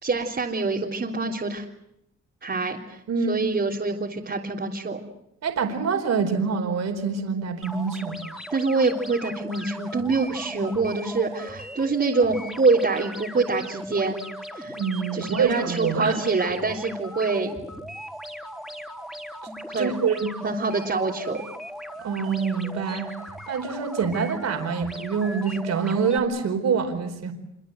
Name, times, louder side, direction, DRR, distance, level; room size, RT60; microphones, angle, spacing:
voice 1, 0.0-1.6 2.4-5.0 8.5-14.2 14.5-14.8 15.1-17.5 19.7-20.0 20.4-21.4, right 3 dB, 35° right, -3 dB, 3.5 m, -25 dB
voice 2, 3.1-3.4 5.4-8.2 14.7-16.2 19.7-20.3 22.0-23.1 23.5-27.3, right 5 dB, 60° right, 5 dB, 4.6 m, -26 dB
sound 1, 7.6-26.2, equal, ahead, 4.1 m, -38 dB
26.0 x 24.0 x 8.0 m, 0.79 s
cardioid pair, 90°, 30 cm